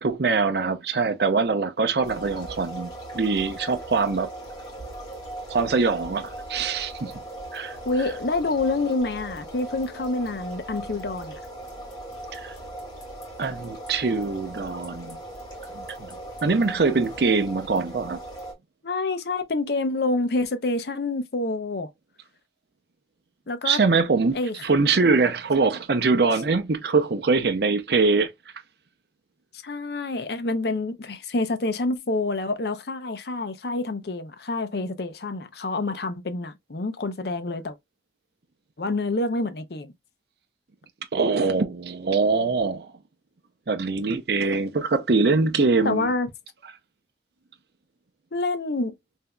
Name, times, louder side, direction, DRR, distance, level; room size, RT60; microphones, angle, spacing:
voice 1, 0.0-4.3 5.5-7.1 7.5-7.8 12.3-12.5 13.4-15.2 15.7-16.1 16.4-18.2 23.6-24.4 24.6-28.3 41.1-42.9 43.7-46.1, right 4 dB, 60° right, 0.6 m, -23 dB
sound 1, 2.0-18.5, right 1 dB, 20° left, 1.5 m, -39 dB
voice 2, 7.9-11.4 18.8-21.9 23.5-23.8 24.3-24.5 29.6-37.8 38.8-39.9 45.8-46.3 48.3-48.9, left 2 dB, 60° left, 0.7 m, -27 dB
5.7 x 2.7 x 2.2 m
head